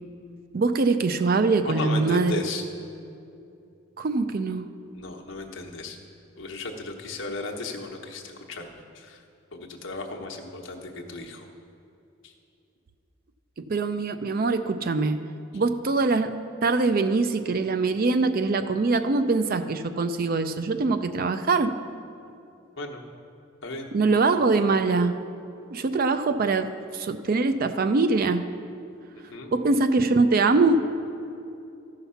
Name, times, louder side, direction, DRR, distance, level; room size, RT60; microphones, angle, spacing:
voice 1, 0.5-2.4 4.0-4.7 13.7-15.2 15.5-16.4 16.6-21.8 23.9-25.2 25.7-28.4 29.5-30.8, right 3 dB, 45° right, 10 dB, 0.4 m, -23 dB
voice 2, 1.6-2.6 4.9-6.0 6.4-9.2 9.5-11.5 12.2-12.3 22.8-23.0 23.6-23.9 29.3-29.5, left 2 dB, 65° left, 1 dB, 1.0 m, -35 dB
13.5 x 5.7 x 5.6 m, 2.7 s
head